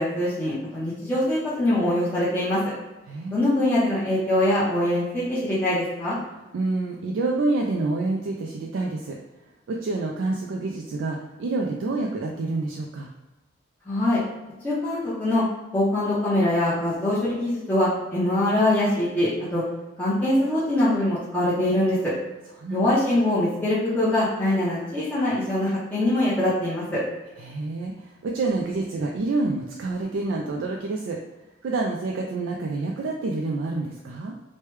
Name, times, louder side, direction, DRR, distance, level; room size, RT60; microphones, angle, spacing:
voice 1, 0.0-2.6 3.3-6.2 13.9-14.2 14.6-15.4 15.7-19.6 20.0-22.0 22.7-27.0, left 1 dB, 10° left, -11 dB, 0.7 m, -23 dB
voice 2, 3.1-3.5 6.5-9.2 9.7-13.1 22.6-22.9 27.4-31.2 31.6-34.3, right 3 dB, 85° right, 0 dB, 0.3 m, -28 dB
3.1 x 2.2 x 3.1 m, 1.1 s
head